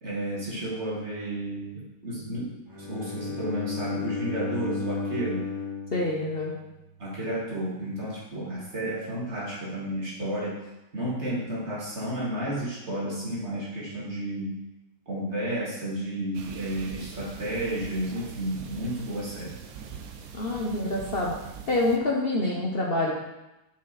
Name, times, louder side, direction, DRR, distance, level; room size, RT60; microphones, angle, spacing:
voice 1, 0.0-5.5 7.0-10.6 10.9-14.6 15.1-19.5, right 1 dB, 40° right, -6 dB, 2.2 m, -32 dB
Bowed string instrument, 2.7-6.8, left 5 dB, 15° right, 1.1 m, -34 dB
voice 2, 5.9-6.5 20.3-21.3 21.7-23.1, left 2 dB, 45° left, -2 dB, 0.8 m, -26 dB
sound 1, 16.3-22.0, right 6 dB, 65° right, 1.0 m, -43 dB
6.5 x 5.2 x 4.1 m, 0.96 s
omnidirectional pair, 1.9 m